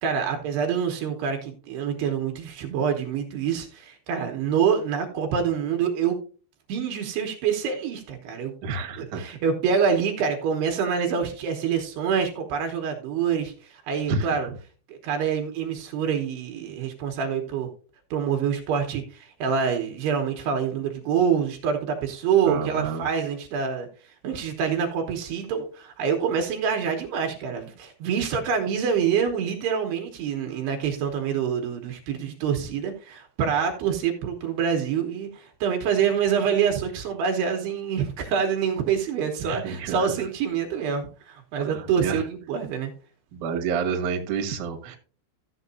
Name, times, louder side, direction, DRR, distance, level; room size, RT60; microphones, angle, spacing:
voice 1, 0.0-6.2 6.7-8.5 9.0-14.5 14.9-17.7 18.1-23.9 24.2-42.9, right 7 dB, 75° right, 4 dB, 3.0 m, -26 dB
voice 2, 8.6-9.4 14.1-14.4 22.4-23.0 39.4-40.1 41.6-42.2 43.3-45.0, right 5 dB, 60° right, 2 dB, 2.4 m, -29 dB
14.0 x 7.8 x 2.6 m, 0.38 s
omnidirectional pair, 5.1 m